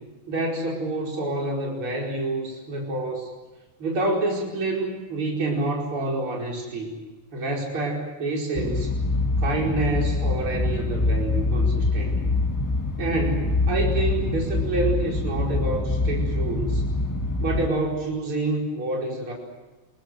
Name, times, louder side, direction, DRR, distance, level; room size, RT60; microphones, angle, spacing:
voice 1, 0.3-3.3 3.8-6.9 7.3-8.9 9.4-12.3 13.0-16.8 17.4-19.3, right 2 dB, 45° right, -2 dB, 5.6 m, -27 dB
sound 1, 8.5-17.7, left 3 dB, 15° left, 0.7 m, -25 dB
28.0 x 21.5 x 7.8 m, 1.2 s
omnidirectional pair, 3.3 m